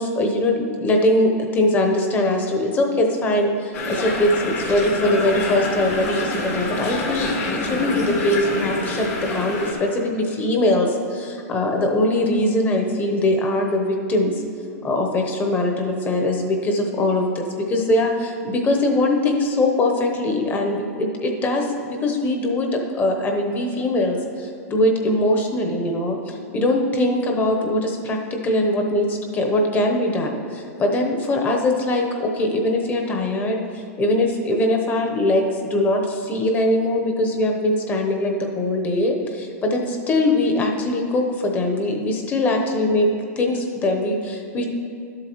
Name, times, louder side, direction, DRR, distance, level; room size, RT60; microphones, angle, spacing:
voice 1, 0.0-14.4 14.8-43.1 43.4-44.6, left 1 dB, 20° left, 2 dB, 0.9 m, -22 dB
sound 1, 3.7-9.7, left 2 dB, 70° left, 2.2 m, -26 dB
11.5 x 7.6 x 3.1 m, 2.4 s
hypercardioid pair, 140°, 9 cm